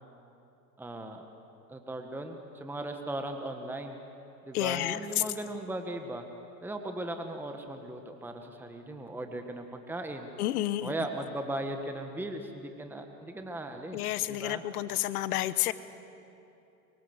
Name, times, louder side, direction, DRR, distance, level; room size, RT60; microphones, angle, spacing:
voice 1, 0.8-1.2 1.7-4.0 4.4-6.3 6.6-10.3 10.8-14.6, right 1 dB, 5° right, 5 dB, 1.5 m, -38 dB
voice 2, 4.5-5.0 10.4-10.9 13.9-15.7, left 14 dB, 65° left, 15 dB, 1.3 m, -30 dB
23.5 x 23.5 x 8.1 m, 2.8 s
hypercardioid pair, 115°, 47 cm